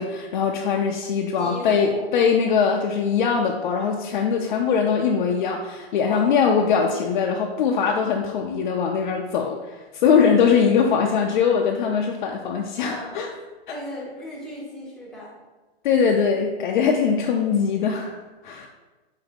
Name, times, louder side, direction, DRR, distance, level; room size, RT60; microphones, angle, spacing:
voice 1, 0.0-13.3 15.8-18.7, left 6 dB, 50° left, 1 dB, 0.4 m, -21 dB
voice 2, 1.4-2.0 6.0-6.4 12.8-13.1 13.7-15.4, left 1 dB, ahead, -5 dB, 0.7 m, -36 dB
4.8 x 2.6 x 3.5 m, 1.2 s
hypercardioid pair, 140°, 31 cm